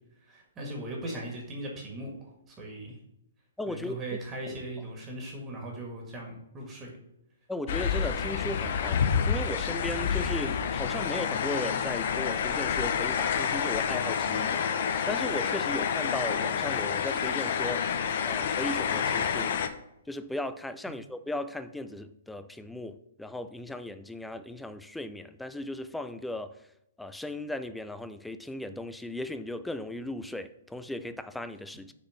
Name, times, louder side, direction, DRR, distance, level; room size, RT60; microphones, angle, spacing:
voice 1, 0.3-3.0 3.7-6.9, right 1 dB, 20° right, 1.8 m, -39 dB
voice 2, 3.6-4.0 7.5-14.6 15.1-17.8 18.2-19.6 20.1-26.6 27.0-31.9, left 1 dB, 5° left, 0.4 m, -36 dB
sound 1, 7.7-19.7, left 7 dB, 55° left, 0.6 m, -28 dB
6.4 x 4.0 x 5.7 m
hypercardioid pair, 130°, 0 cm